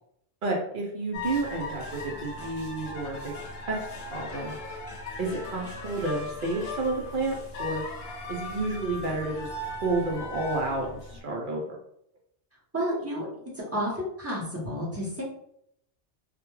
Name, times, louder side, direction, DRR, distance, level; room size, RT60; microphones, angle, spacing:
voice 1, 0.4-3.3 3.7-3.8 4.1-4.6 5.2-7.8 8.3-11.8, right 2 dB, 60° right, -1 dB, 0.6 m, -30 dB
sound 1, 1.1-11.2, left 2 dB, 65° left, 0.8 m, -38 dB
voice 2, 12.7-15.2, equal, 15° right, -5 dB, 0.6 m, -31 dB
2.2 x 2.1 x 3.0 m, 0.73 s
omnidirectional pair, 1.2 m